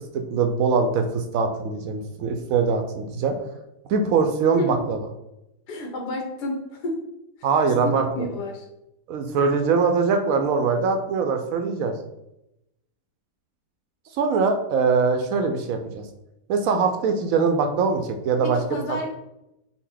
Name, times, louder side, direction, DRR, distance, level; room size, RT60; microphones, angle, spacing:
voice 1, 0.3-3.3 3.9-5.0 7.4-8.1 9.1-11.9 14.2-16.0 16.5-18.8, right 5 dB, 70° right, 5 dB, 0.8 m, -22 dB
voice 2, 5.7-7.0 8.1-8.6 18.4-19.1, left 1 dB, 75° left, 1 dB, 1.5 m, -30 dB
6.1 x 2.1 x 3.9 m, 0.87 s
omnidirectional pair, 1.8 m